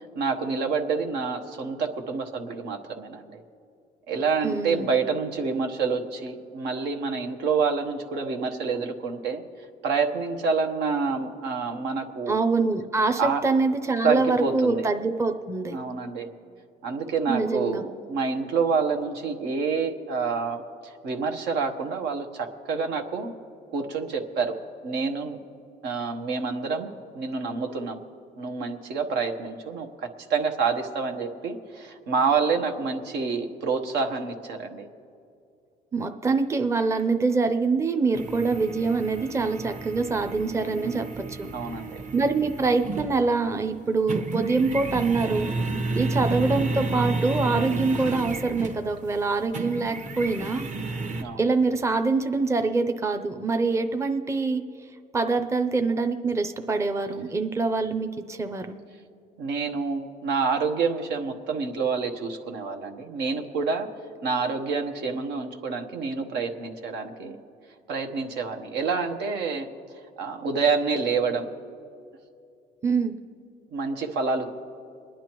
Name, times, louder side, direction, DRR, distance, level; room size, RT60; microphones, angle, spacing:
voice 1, 0.0-3.4 4.1-9.4 9.8-12.4 13.2-13.4 14.0-14.9 15.7-16.3 16.8-23.3 23.7-24.6 24.8-25.4 25.8-28.0 28.4-34.9 40.7-41.1 41.5-42.0 51.2-51.4 59.4-63.9 64.2-67.4 67.9-69.7 70.2-71.5 73.7-74.5, right 5 dB, 80° right, 5 dB, 1.1 m, -28 dB
voice 2, 4.4-5.0 12.3-15.8 17.3-17.8 35.9-41.5 42.1-50.6 51.4-54.6 55.1-58.8 72.8-73.1, right 3 dB, 15° right, 7 dB, 0.6 m, -25 dB
sound 1, 38.1-43.4 43.7-51.2, right 2 dB, 45° right, 1.2 m, -31 dB
27.0 x 10.0 x 3.0 m, 2.4 s
cardioid pair, 110°, 17 cm